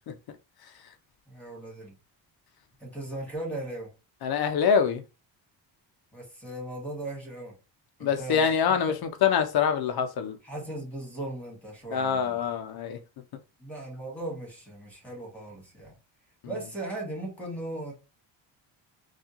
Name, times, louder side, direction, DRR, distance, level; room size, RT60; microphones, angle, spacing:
voice 1, 1.3-1.9 2.8-3.9 6.1-7.5 8.0-9.0 10.4-12.5 13.6-15.9 16.4-17.9, right 1 dB, 5° left, 1.9 m, -38 dB
voice 2, 4.2-5.0 8.0-8.9 9.2-10.4 11.9-13.0, left 7 dB, 55° left, 0.5 m, -24 dB
3.5 x 2.4 x 2.8 m
cardioid pair, 85°, 48 cm